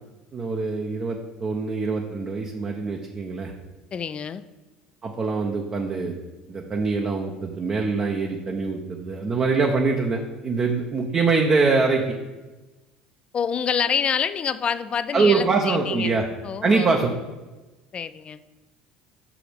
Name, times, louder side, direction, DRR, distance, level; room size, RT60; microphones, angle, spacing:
voice 1, 0.3-3.5 5.0-6.2 6.5-12.2 15.1-16.3 16.6-17.1, right 4 dB, 35° right, 1 dB, 0.8 m, -24 dB
voice 2, 3.9-4.4 13.3-16.1 16.4-16.9 17.9-18.4, left 7 dB, 35° left, 14 dB, 0.4 m, -27 dB
6.0 x 4.9 x 5.1 m, 1.1 s
hypercardioid pair, 75°, 3 cm